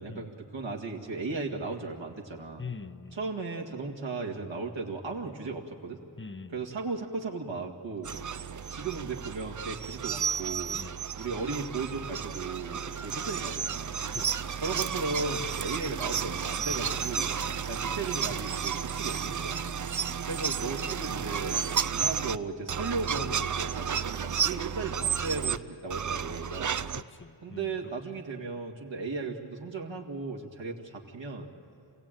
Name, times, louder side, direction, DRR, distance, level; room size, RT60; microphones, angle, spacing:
voice 1, 0.0-2.6 3.1-6.0 6.5-8.1 8.7-10.8 11.2-14.0 14.6-17.4 17.7-19.7 20.2-21.6 21.9-26.7 27.4-31.5, right 3 dB, 65° right, 0 dB, 2.2 m, -36 dB
voice 2, 2.6-3.3 5.2-5.4 6.2-6.7 10.7-11.0 14.1-14.8 26.9-27.9, left 4 dB, 25° left, 12 dB, 0.9 m, -44 dB
sound 1, 8.0-22.4 22.7-25.6 25.9-27.0, right 7 dB, 40° right, 0.6 m, -32 dB
27.0 x 16.5 x 9.1 m, 2.6 s
cardioid pair, 60°, 48 cm